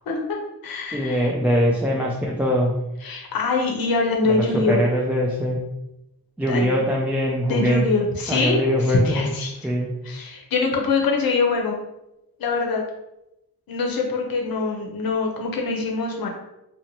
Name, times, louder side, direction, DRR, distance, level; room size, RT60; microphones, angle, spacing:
voice 1, 0.1-0.4 0.6-1.3 3.0-4.8 6.5-6.7 7.5-9.5 10.0-11.8 12.4-12.8 13.7-16.3, left 3 dB, 75° left, 1 dB, 0.7 m, -24 dB
voice 2, 0.9-2.7 4.2-5.6 6.4-7.8 8.3-9.3 9.6-9.9, equal, 5° right, -3 dB, 0.3 m, -22 dB
2.9 x 2.1 x 3.9 m, 0.90 s
wide cardioid pair, 135°, 35 cm